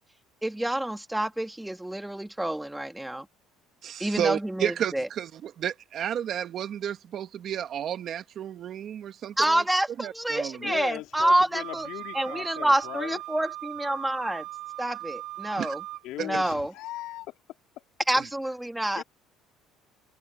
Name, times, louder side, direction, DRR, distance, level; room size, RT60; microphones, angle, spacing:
voice 1, 0.4-3.3 4.0-5.1 9.4-11.9 12.1-14.4 14.8-15.8 16.2-16.7 18.1-19.0, right 1 dB, 5° right, 2.3 m, -27 dB
voice 2, 3.8-9.6 10.0-10.7 15.6-15.7 16.2-16.3, right 9 dB, 45° right, 1.4 m, -32 dB
voice 3, 10.6-13.2 16.0-17.4 19.0-19.1, left 16 dB, 70° left, 3.4 m, -38 dB
Wind instrument woodwind instrument, 11.5-16.1, right 16 dB, 75° right, 2.6 m, -39 dB
cardioid pair, 130°, 0 cm